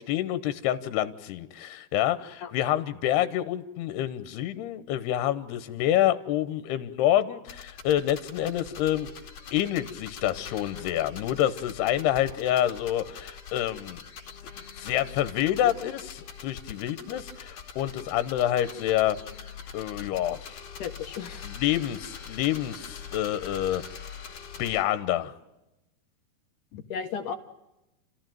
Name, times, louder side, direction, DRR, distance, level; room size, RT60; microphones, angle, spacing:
voice 1, 0.0-9.1 9.5-14.0 14.8-19.2 19.7-20.5 21.4-23.8 24.6-25.3, left 12 dB, 85° left, 12 dB, 3.0 m, -27 dB
sound 1, 7.5-24.8, left 6 dB, 45° left, 3.1 m, -43 dB
voice 2, 20.8-21.5 26.7-27.4, left 7 dB, 65° left, 6 dB, 2.4 m, -34 dB
30.0 x 15.0 x 9.2 m, 0.96 s
omnidirectional pair, 4.6 m